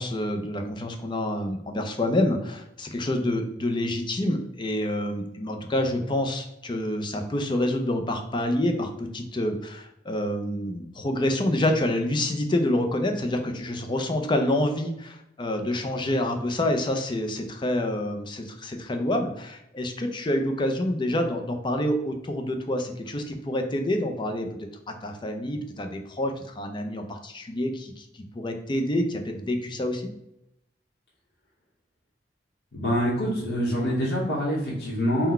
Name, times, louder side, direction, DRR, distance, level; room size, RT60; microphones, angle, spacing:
voice 1, 0.0-24.5 24.9-28.0 28.3-30.1, left 1 dB, 25° left, 4 dB, 0.5 m, -27 dB
voice 2, 32.7-35.3, equal, 75° left, -6 dB, 1.0 m, -25 dB
3.9 x 2.2 x 4.2 m, 0.83 s
head